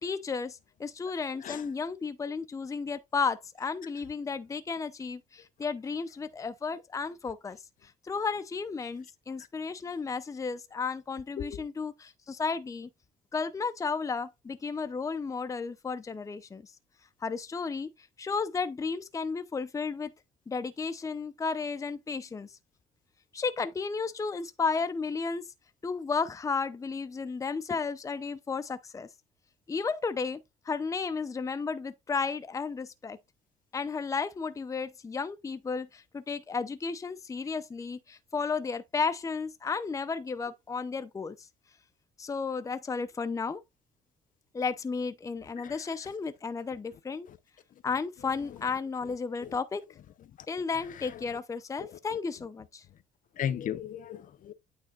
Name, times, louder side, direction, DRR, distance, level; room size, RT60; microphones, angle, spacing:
voice 1, 0.0-12.9 13.3-16.7 17.2-20.1 20.5-22.6 23.3-25.4 25.8-29.1 29.7-30.4 30.7-33.2 33.7-41.5 42.2-43.6 44.5-47.3 47.8-49.8 50.5-52.8, left 5 dB, 20° left, 0.7 m, -33 dB
voice 2, 53.4-54.5, left 9 dB, 50° left, 0.8 m, -36 dB
9.1 x 3.5 x 4.0 m
cardioid pair, 110°, 17 cm